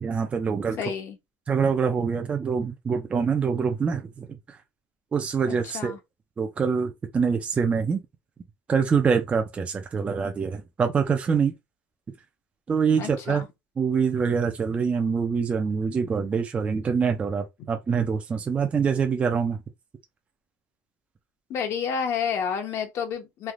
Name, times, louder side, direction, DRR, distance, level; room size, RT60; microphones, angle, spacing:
voice 1, 0.0-0.8 1.5-4.6 5.1-5.9 6.4-8.0 8.7-11.5 12.7-13.4 13.8-19.6, right 6 dB, 20° right, 0.4 m, -25 dB
voice 2, 0.8-1.2 5.5-6.0 13.0-13.5 21.5-23.5, left 7 dB, 50° left, 0.8 m, -30 dB
3.2 x 2.5 x 2.4 m
cardioid pair, 145°, 6 cm